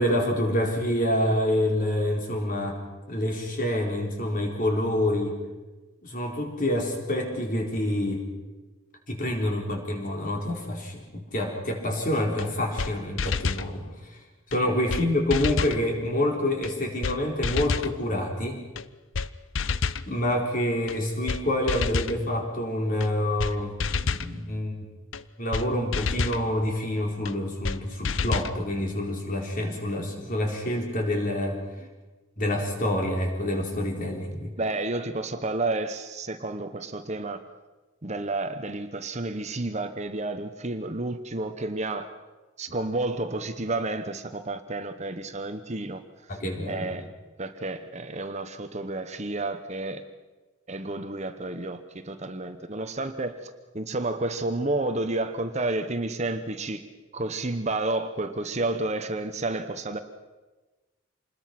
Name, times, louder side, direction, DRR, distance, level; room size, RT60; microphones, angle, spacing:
voice 1, 0.0-2.8 3.1-5.4 6.0-8.3 9.1-13.9 14.5-18.6 20.1-24.7 25.4-31.6 32.4-34.5 46.3-46.9, left 1 dB, 40° left, 1 dB, 4.4 m, -27 dB
sound 1, 12.4-12.5 12.8-12.9 13.2-13.7 14.5-14.6 14.9-15.0 15.3-15.8 16.6-16.7 17.0-17.2 17.4-17.9 18.8-18.9 19.1-19.3 19.6-20.0 20.9-21.0 21.3-21.4 21.7-22.2 23.0-23.1 23.4-23.5 23.8-24.3 25.1-25.2 25.5-25.7 25.9-26.4 27.3-27.4 27.6-27.8 28.0-28.5, left 4 dB, 65° left, 0.7 m, -28 dB
voice 2, 34.6-37.4 38.0-42.1 42.6-46.0 46.7-47.1 47.4-50.0 50.7-56.8 57.1-60.0, right 2 dB, 35° right, 8 dB, 1.0 m, -31 dB
27.0 x 20.5 x 6.0 m, 1.2 s
head